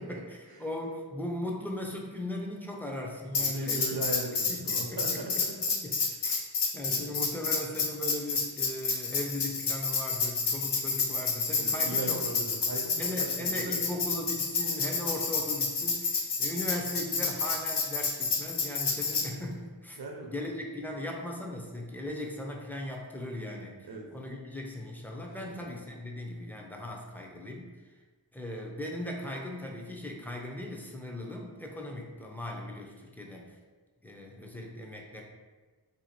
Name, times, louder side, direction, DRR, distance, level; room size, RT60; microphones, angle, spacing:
voice 1, 0.0-4.0 4.3-5.4 5.8-6.5 6.7-12.2 13.0-20.0 20.2-27.7 28.3-33.5 34.0-35.2, left 1 dB, 5° left, -1 dB, 0.6 m, -38 dB
Tambourine, 3.3-19.3, left 4 dB, 75° left, 0.6 m, -29 dB
voice 2, 3.4-5.8 6.9-7.1 11.6-13.8 20.0-20.3 23.9-24.1 25.4-25.7, right 2 dB, 60° right, 1 dB, 0.7 m, -39 dB
2.7 x 2.4 x 4.2 m, 1.3 s
wide cardioid pair, 55°, 41 cm